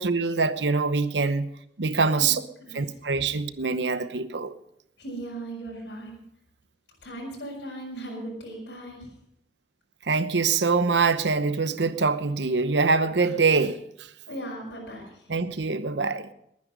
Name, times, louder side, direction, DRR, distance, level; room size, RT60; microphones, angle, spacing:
voice 1, 0.0-1.5 1.8-2.4 2.7-4.5 10.0-13.8 15.3-16.3, right 4 dB, 80° right, 0.9 m, -24 dB
voice 2, 5.0-6.2 7.0-9.1 14.3-15.2, right 1 dB, 80° left, 5.7 m, -37 dB
20.5 x 9.8 x 5.2 m
head